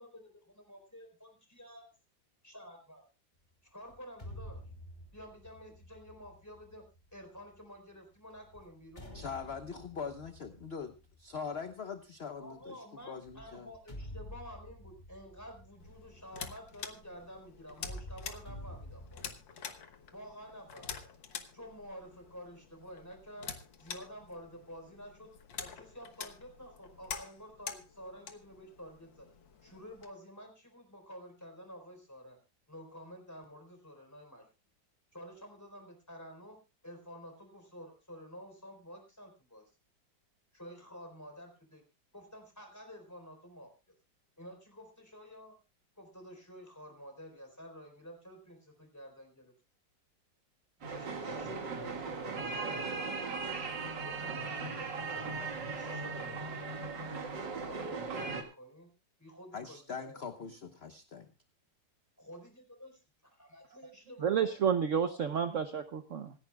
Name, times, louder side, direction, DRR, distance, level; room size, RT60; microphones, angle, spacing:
voice 1, 0.0-1.9 2.4-3.1 3.6-4.6 5.1-6.8 7.1-9.2 12.4-19.2 20.1-21.0 21.5-23.5 23.8-25.3 25.6-29.3 29.6-32.4 32.7-34.5 35.1-36.6 36.8-39.6 40.5-41.8 42.1-43.7 44.4-45.6 46.0-49.5 50.9-55.5 55.7-58.9 59.2-60.2 62.2-64.6 65.1-65.6, equal, 10° left, 5 dB, 4.2 m, -50 dB
sound 1, 3.9-7.6 8.3-12.0 13.2-17.2 17.7-19.2, equal, 25° left, 2.8 m, -49 dB
voice 2, 9.1-12.8 13.1-13.7 59.5-61.3, left 5 dB, 40° left, 7 dB, 1.1 m, -42 dB
sound 2, 15.8-30.1, left 7 dB, 90° left, 2.0 m, -47 dB
sound 3, 50.8-58.4, right 4 dB, 75° right, 2.5 m, -38 dB
voice 3, 64.2-66.3, right 7 dB, 55° right, 9 dB, 1.0 m, -30 dB
26.0 x 11.0 x 2.2 m, 0.29 s
omnidirectional pair, 2.0 m